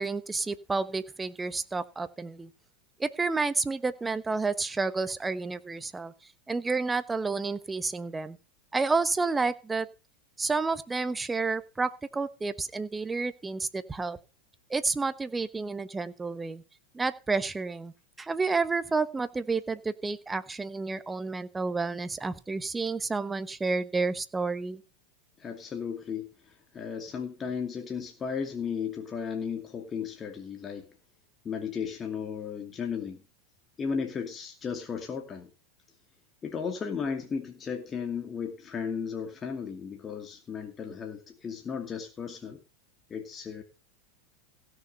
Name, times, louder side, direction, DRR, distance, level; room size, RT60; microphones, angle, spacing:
voice 1, 0.0-2.5 3.0-6.1 6.5-8.4 8.7-9.9 10.4-14.2 14.7-16.6 16.9-24.8, right 4 dB, 15° right, 1.1 m, -30 dB
voice 2, 25.4-26.3 26.7-30.9 31.4-33.2 33.8-35.5 36.4-42.6 43.1-43.6, left 6 dB, 25° left, 2.4 m, -35 dB
16.5 x 6.9 x 5.5 m
hypercardioid pair, 115°, 0 cm